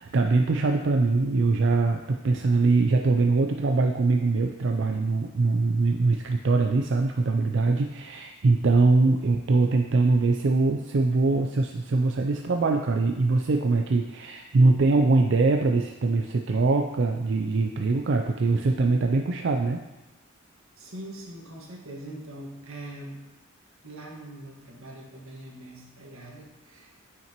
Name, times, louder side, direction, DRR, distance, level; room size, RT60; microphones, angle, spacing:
voice 1, 0.0-19.8, right 3 dB, 60° right, 3 dB, 0.4 m, -23 dB
voice 2, 20.8-23.2 23.8-26.9, right 1 dB, 90° right, -2 dB, 1.7 m, -42 dB
9.3 x 5.8 x 3.0 m, 1.0 s
head